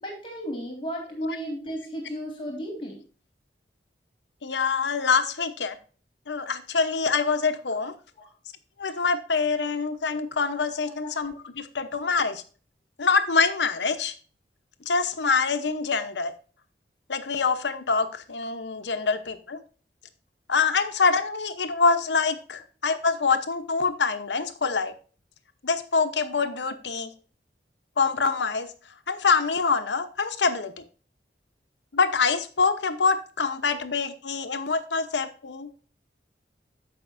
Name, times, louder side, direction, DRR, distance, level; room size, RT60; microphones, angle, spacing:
voice 1, 0.0-3.0 8.2-8.3 11.0-11.1, equal, 30° left, 1 dB, 2.0 m, -34 dB
voice 2, 4.4-5.8 6.3-7.9 8.8-12.4 13.0-14.1 14.9-16.3 17.1-19.6 20.5-24.9 25.6-27.1 28.0-28.7 29.1-30.7 31.9-35.7, left 4 dB, 85° left, 9 dB, 0.9 m, -25 dB
14.0 x 5.2 x 2.6 m, 0.39 s
head